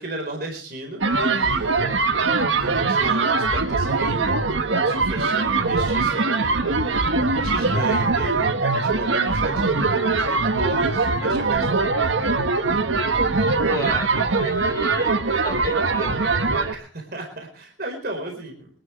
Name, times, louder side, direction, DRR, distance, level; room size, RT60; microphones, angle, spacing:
voice 1, 0.0-1.8 2.4-4.4 4.7-6.8 7.3-11.9 13.8-14.0 16.7-18.7, right 2 dB, 50° right, 3 dB, 4.4 m, -34 dB
sound 1, 1.0-16.7, right 3 dB, 80° right, 1.4 m, -22 dB
voice 2, 13.6-16.7, left 2 dB, 15° left, 2 dB, 4.0 m, -35 dB
25.5 x 12.5 x 3.3 m, 0.34 s
head